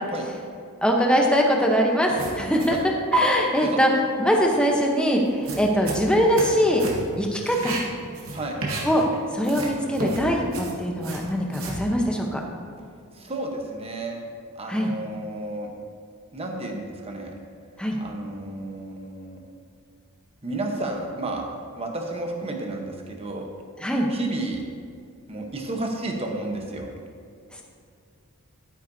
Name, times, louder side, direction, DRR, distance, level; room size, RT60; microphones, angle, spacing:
voice 1, 0.8-2.8 3.1-3.9 4.2-6.8 7.2-7.8 8.8-9.0 9.3-12.4 14.7-14.9 17.8-18.0 23.8-24.1, equal, 5° left, 0 dB, 0.9 m, -22 dB
sound 1, 2.2-2.8 3.1-3.2 5.2-6.5 6.8-7.1 7.4-9.1 9.4-11.8, right 3 dB, 80° right, 1.6 m, -31 dB
voice 2, 13.2-14.2 14.5-15.7 16.3-17.3 18.0-19.4 20.4-21.4 21.7-23.5 24.1-24.6 25.3-26.9, right 2 dB, 25° right, 2 dB, 1.0 m, -32 dB
11.5 x 9.5 x 2.8 m, 2.3 s
head